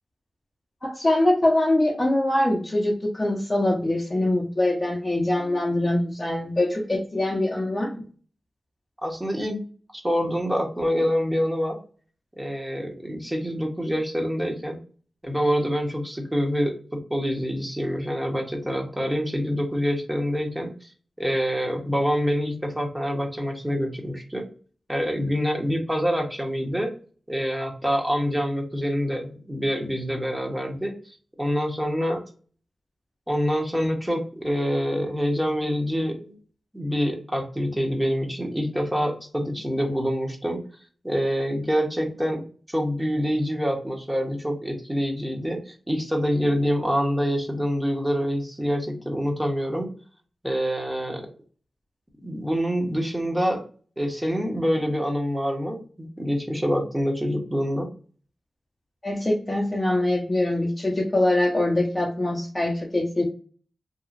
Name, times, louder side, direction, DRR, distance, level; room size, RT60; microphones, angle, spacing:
voice 1, 0.8-8.0 59.0-63.2, left 1 dB, 30° left, -3 dB, 0.7 m, -23 dB
voice 2, 9.0-9.6 10.0-11.8 12.4-14.8 15.2-20.9 21.2-24.5 24.9-26.9 27.3-30.9 31.4-32.2 33.3-36.3 36.7-40.6 41.0-42.4 42.7-49.9 50.4-51.2 52.2-53.6 54.0-57.9, equal, 15° right, 1 dB, 1.0 m, -26 dB
2.8 x 2.3 x 2.5 m, 0.40 s
cardioid pair, 45°, 0 cm